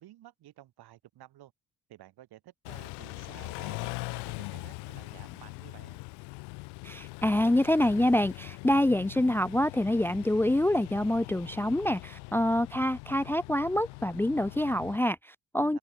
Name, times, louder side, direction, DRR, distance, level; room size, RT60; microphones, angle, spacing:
voice 1, 0.0-1.5 1.9-6.0 15.6-15.8, right 14 dB, 65° right, 6.6 m, -53 dB
Car / Idling / Accelerating revving vroom, 2.6-15.0, left 29 dB, 75° left, 1.3 m, -42 dB
voice 2, 6.8-15.8, left 1 dB, 5° left, 0.6 m, -26 dB
open air
hypercardioid pair, 50°, 41 cm